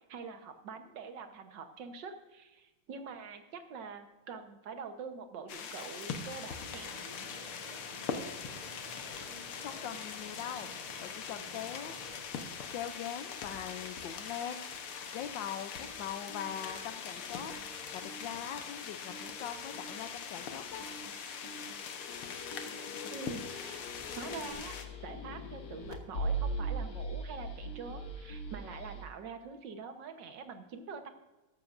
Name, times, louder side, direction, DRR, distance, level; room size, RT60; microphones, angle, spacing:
voice 1, 0.1-6.9 23.1-24.8 25.0-31.1, right 5 dB, 60° right, 7 dB, 1.7 m, -45 dB
sound 1, 5.5-24.8, left 6 dB, 85° left, 2.0 m, -42 dB
sound 2, 6.5-12.2, equal, 25° right, 1.2 m, -52 dB
voice 2, 9.6-10.7 11.0-12.0 12.7-14.6 15.1-17.5 17.9-20.8, left 9 dB, 70° left, 7 dB, 1.3 m, -41 dB
sound 3, 15.8-29.0, right 2 dB, 50° left, 1.7 m, -42 dB
14.5 x 12.0 x 2.6 m, 1.1 s
omnidirectional pair, 2.3 m